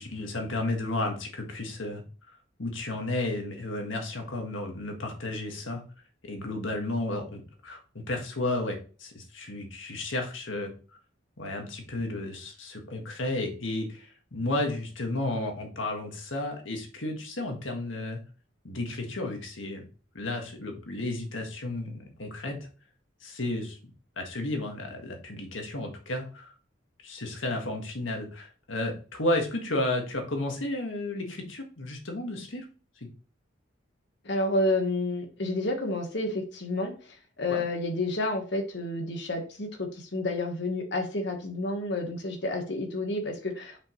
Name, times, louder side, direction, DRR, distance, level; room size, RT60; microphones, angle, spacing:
voice 1, 0.0-2.0 2.6-5.8 6.2-10.7 11.4-18.2 18.6-19.8 20.2-22.6 23.2-23.8 24.2-26.5 27.0-32.7 33.0-33.1 37.5-37.6, left 2 dB, 80° left, 3 dB, 1.6 m, -32 dB
voice 2, 34.2-43.8, left 2 dB, 60° left, 4 dB, 1.3 m, -30 dB
6.8 x 5.3 x 3.1 m, 0.38 s
head